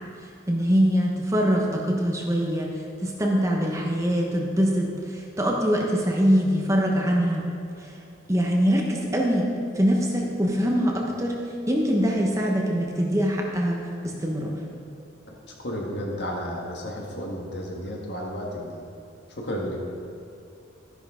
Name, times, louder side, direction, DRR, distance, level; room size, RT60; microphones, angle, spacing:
voice 1, 0.5-7.5 7.8-7.9 8.3-11.4 11.7-14.6, equal, 15° right, -1 dB, 1.0 m, -23 dB
voice 2, 15.3-18.8 19.3-19.8, equal, 55° left, -2 dB, 1.7 m, -32 dB
13.5 x 10.5 x 3.7 m, 2.6 s
head